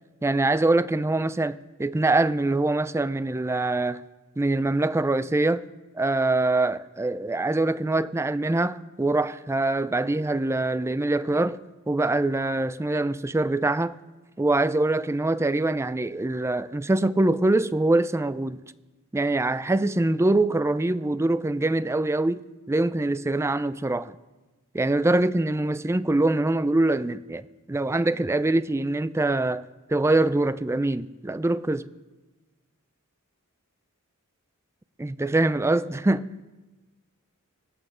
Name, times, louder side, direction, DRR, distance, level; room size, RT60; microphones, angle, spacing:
voice 1, 0.2-4.0 4.4-5.6 5.9-11.6 11.9-13.9 14.4-18.6 19.1-22.4 22.7-24.1 24.7-29.6 29.9-31.9 35.0-36.3, right 2 dB, 10° right, 0.4 m, -24 dB
25.5 x 8.5 x 5.0 m
head